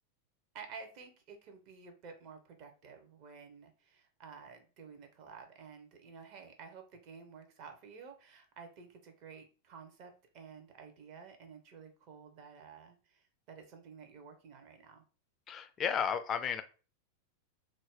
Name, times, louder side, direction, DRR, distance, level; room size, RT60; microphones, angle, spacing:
voice 1, 0.5-15.0, right 5 dB, 45° right, 5 dB, 0.6 m, -52 dB
voice 2, 15.5-16.6, left 7 dB, 25° left, 9 dB, 0.3 m, -33 dB
2.5 x 2.0 x 3.5 m, 0.35 s
figure-of-eight pair, 90°, 0 cm